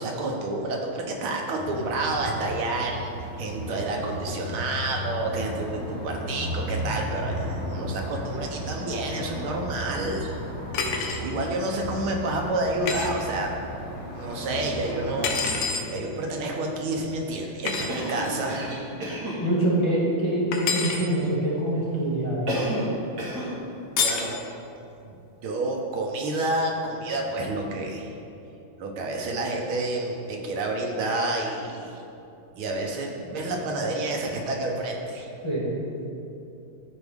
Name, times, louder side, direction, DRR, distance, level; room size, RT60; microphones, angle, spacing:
voice 1, 0.0-3.1 3.4-10.4 11.2-13.5 14.1-15.4 15.9-18.7 24.0-24.5 25.0-25.2 25.4-28.1 28.8-32.0 32.6-35.3, right 2 dB, 75° right, 1 dB, 1.8 m, -29 dB
sound 1, 1.6-15.6, equal, 55° left, 2.3 m, -35 dB
sound 2, 10.7-11.2 12.9-13.1 15.2-15.9 17.7-17.9 20.5-21.0 24.0-24.3, left 5 dB, 75° left, 1.6 m, -27 dB
Cough, 17.9-19.4 22.5-22.9 23.2-23.5, right 1 dB, 50° right, 1.8 m, -30 dB
voice 2, 19.4-22.6 35.4-35.7, right 1 dB, 15° left, -8 dB, 1.7 m, -25 dB
13.5 x 4.6 x 3.6 m, 2.7 s
omnidirectional pair, 2.4 m